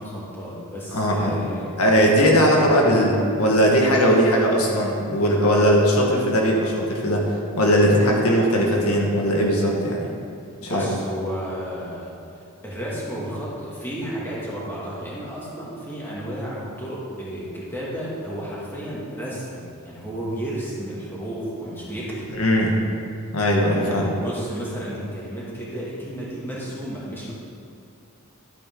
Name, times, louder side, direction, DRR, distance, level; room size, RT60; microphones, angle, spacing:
voice 1, 0.0-1.8 2.6-2.9 10.6-22.4 23.7-27.3, equal, 10° left, -7 dB, 2.3 m, -32 dB
voice 2, 0.9-1.4 1.8-10.1 10.6-10.8 22.3-22.7 23.3-24.0, equal, 85° left, -1 dB, 1.6 m, -19 dB
12.5 x 8.4 x 3.8 m, 2.4 s
head